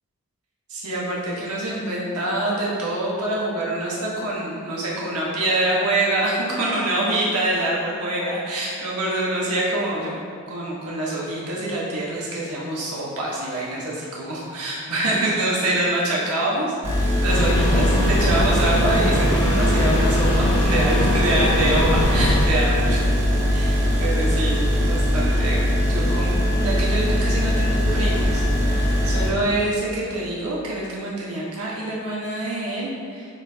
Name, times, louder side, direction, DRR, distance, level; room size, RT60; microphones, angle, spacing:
voice 1, 0.7-10.2 10.5-23.1 23.5-25.6 25.9-33.3, right 1 dB, 85° right, -5 dB, 1.4 m, -25 dB
sound 1, 16.8-29.3, equal, 30° right, 1.3 m, -21 dB
sound 2, 17.3-22.5, equal, 85° left, 1.0 m, -24 dB
8.7 x 4.4 x 2.9 m, 2.4 s
head